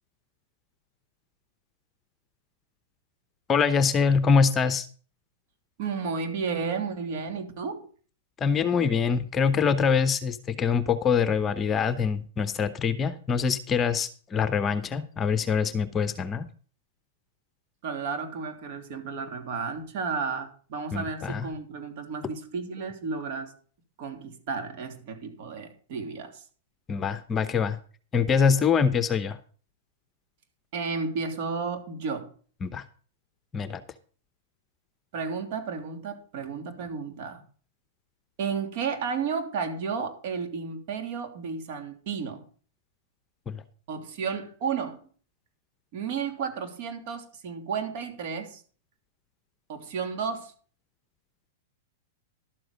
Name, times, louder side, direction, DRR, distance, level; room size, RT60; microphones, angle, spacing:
voice 1, 3.5-4.9 8.4-16.5 20.9-21.5 26.9-27.8 28.1-29.4 32.6-32.8 33.5-33.8 43.5-43.6, left 6 dB, 20° left, 13 dB, 0.9 m, -24 dB
voice 2, 5.8-7.9 17.8-23.5 24.0-26.4 30.7-32.3 35.1-37.4 38.4-42.4 43.9-45.1 45.9-48.6 49.7-50.5, right 5 dB, 55° right, 5 dB, 3.0 m, -32 dB
12.0 x 7.7 x 5.1 m, 0.42 s
hypercardioid pair, 130°, 0 cm